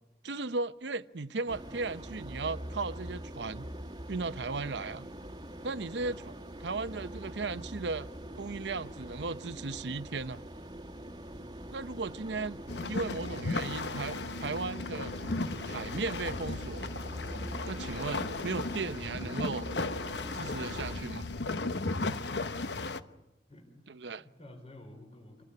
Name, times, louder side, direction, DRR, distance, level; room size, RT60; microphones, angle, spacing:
voice 1, 0.2-3.7 4.1-5.1 5.6-6.2 6.6-8.1 8.4-10.4 11.7-12.6 12.9-15.1 15.7-16.9 17.7-19.7 20.3-21.3 23.9-24.2, right 3 dB, 75° right, 0.8 m, -36 dB
sound 1, 1.5-21.0, right 1 dB, 25° right, 1.6 m, -44 dB
sound 2, 12.7-23.0, left 3 dB, 70° left, 1.0 m, -36 dB
voice 2, 23.5-23.9 24.1-25.4, left 1 dB, 35° left, 3.9 m, -51 dB
26.5 x 19.0 x 9.7 m
head